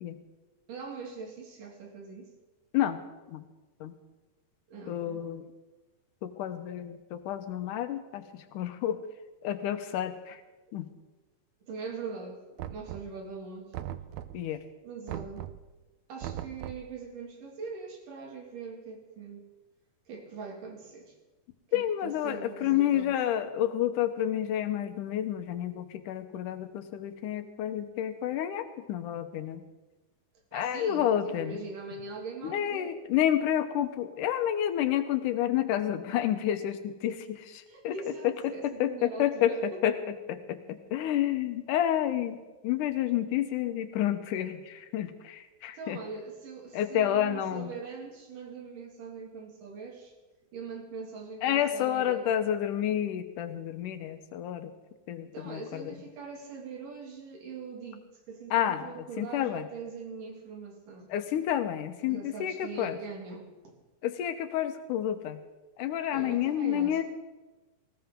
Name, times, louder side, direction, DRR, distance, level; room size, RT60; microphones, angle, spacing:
voice 1, 0.7-2.3 4.7-5.3 11.6-13.7 14.8-15.5 16.1-19.5 20.1-21.1 21.7-23.1 30.5-33.0 37.7-39.9 45.7-50.1 50.5-52.3 55.3-61.1 62.1-63.8 66.1-67.0, right 4 dB, 70° right, 1 dB, 3.9 m, -42 dB
voice 2, 4.9-5.4 6.2-8.2 8.5-9.0 9.4-10.4 10.7-10.9 14.3-14.6 21.7-29.6 30.5-31.6 32.4-37.9 38.8-39.5 39.8-39.9 40.3-40.6 40.9-42.4 42.6-46.0 46.7-47.7 51.4-54.7 55.1-55.6 58.5-58.8 59.2-59.6 61.1-62.5 62.8-63.0 64.0-65.4 65.8-67.0, left 11 dB, 75° left, 8 dB, 2.4 m, -29 dB
Knock, 12.6-13.3 13.7-14.5 15.1-15.7 16.2-16.9, right 11 dB, 90° right, 1.5 m, -39 dB
19.5 x 17.0 x 3.8 m, 1.1 s
omnidirectional pair, 3.9 m